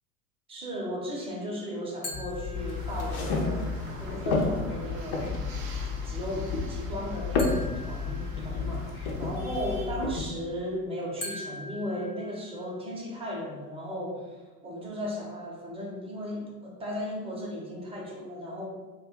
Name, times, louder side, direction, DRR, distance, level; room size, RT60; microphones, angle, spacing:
voice 1, 0.5-3.7 4.0-5.4 6.0-18.7, equal, 15° right, -3 dB, 0.6 m, -36 dB
sound 1, 2.0-3.3 7.4-8.9 11.2-12.9, left 2 dB, 85° left, 0.7 m, -42 dB
sound 2, 2.1-10.2, left 4 dB, 35° left, 0.5 m, -31 dB
sound 3, 2.5-9.9, right 3 dB, 60° right, 0.7 m, -45 dB
2.4 x 2.3 x 3.4 m, 1.2 s
figure-of-eight pair, 80°, 44 cm